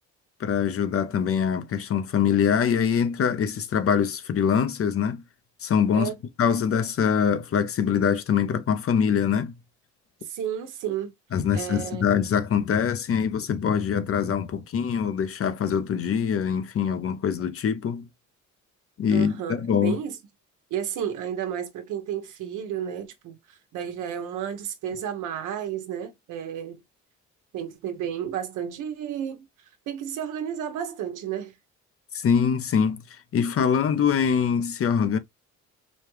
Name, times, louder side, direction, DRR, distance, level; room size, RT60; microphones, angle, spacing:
voice 1, 0.4-5.2 5.6-9.5 11.3-18.1 19.0-20.0 32.1-35.2, left 7 dB, 50° left, 0.7 m, -24 dB
voice 2, 10.2-11.1 11.5-12.0 19.1-20.2 20.7-26.8 27.5-29.5 29.9-31.5, right 9 dB, 90° right, 1.1 m, -32 dB
5.0 x 2.3 x 3.1 m
cardioid pair, 90°, 30 cm